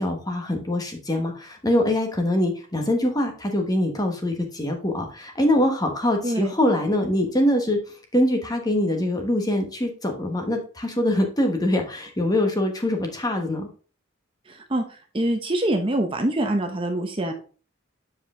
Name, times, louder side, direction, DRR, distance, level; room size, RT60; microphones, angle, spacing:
voice 1, 0.0-7.8 8.1-13.7, left 1 dB, 20° left, 3 dB, 1.2 m, -23 dB
voice 2, 6.2-6.5 14.5-14.8 15.1-17.3, right 1 dB, 25° right, 4 dB, 0.8 m, -24 dB
7.6 x 4.8 x 3.7 m, 0.38 s
head